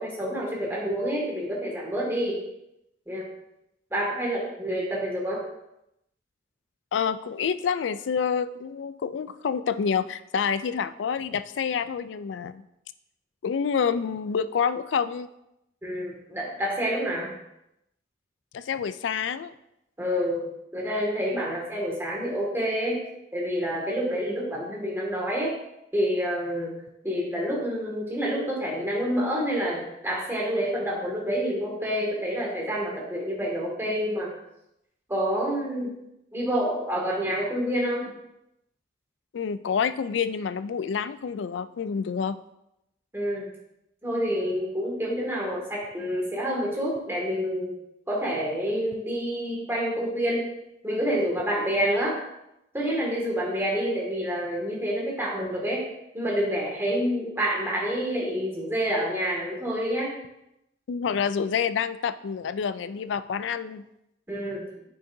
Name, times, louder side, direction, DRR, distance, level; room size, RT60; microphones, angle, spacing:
voice 1, 0.0-2.4 3.1-3.3 3.9-5.4 15.8-17.3 20.0-20.5 20.7-23.0 23.3-25.6 25.9-26.8 27.0-34.3 35.1-35.9 36.3-38.1 43.1-43.5 44.0-47.8 48.1-50.5 50.8-52.2 52.7-55.8 56.1-60.1 64.3-64.7, equal, 15° right, -4 dB, 2.0 m, -28 dB
voice 2, 6.9-12.6 13.4-15.3 18.5-19.5 39.3-42.4 60.9-63.8, left 6 dB, 85° left, 14 dB, 0.4 m, -28 dB
8.4 x 6.4 x 2.7 m, 0.84 s
head